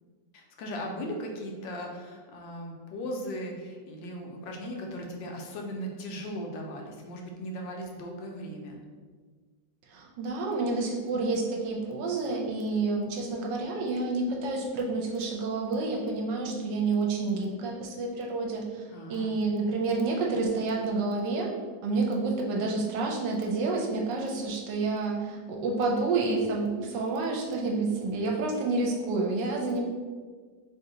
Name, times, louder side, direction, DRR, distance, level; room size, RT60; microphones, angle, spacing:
voice 1, 0.3-8.8 18.9-19.4 22.5-22.8, equal, 85° left, 1 dB, 1.3 m, -38 dB
voice 2, 9.9-21.5 21.8-29.9, right 3 dB, 75° right, -1 dB, 1.2 m, -29 dB
3.2 x 2.7 x 3.8 m, 1.5 s
omnidirectional pair, 2.0 m